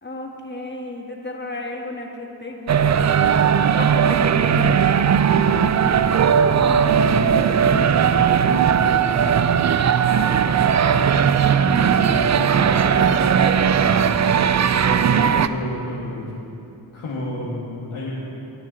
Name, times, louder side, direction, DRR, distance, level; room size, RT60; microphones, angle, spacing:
voice 1, 0.0-3.3 3.7-4.8, left 2 dB, 25° left, 1 dB, 1.7 m, -33 dB
sound 1, 2.7-15.5, right 7 dB, 40° right, 0.4 m, -18 dB
voice 2, 6.4-9.6 11.5-14.6 14.9-16.4 16.9-18.4, left 1 dB, 90° left, -7 dB, 1.6 m, -31 dB
19.0 x 6.4 x 4.0 m, 2.8 s
cardioid pair, 40°, 45 cm